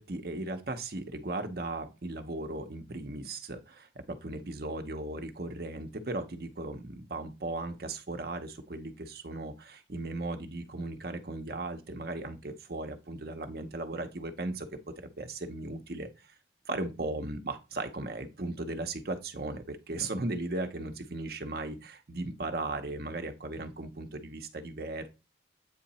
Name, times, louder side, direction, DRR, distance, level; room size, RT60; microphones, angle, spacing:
voice 1, 0.0-14.7 15.0-16.1 16.7-25.1, right 2 dB, 55° right, 6 dB, 0.8 m, -37 dB
8.2 x 2.9 x 4.2 m, 0.27 s
head